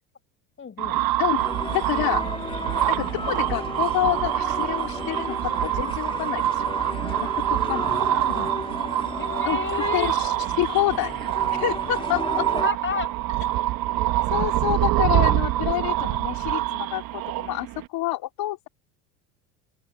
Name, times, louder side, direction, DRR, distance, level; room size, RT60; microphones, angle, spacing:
voice 1, 0.6-1.0 7.9-8.6 9.2-10.1 12.6-13.1, left 6 dB, 30° left, 6.0 m, -32 dB
sound 1, 0.8-17.8, right 14 dB, 55° right, 1.6 m, -25 dB
sound 2, 1.4-12.7, left 3 dB, 10° left, 2.7 m, -35 dB
sound 3, 1.6-8.0 8.5-15.7, right 6 dB, 25° right, 7.0 m, -53 dB
voice 2, 1.7-2.2 2.9-6.7 7.2-7.9 9.4-9.6 9.9-10.3 10.6-11.1 11.5-12.5 14.3-18.7, left 16 dB, 55° left, 3.8 m, -28 dB
open air
hypercardioid pair, 90°, 43 cm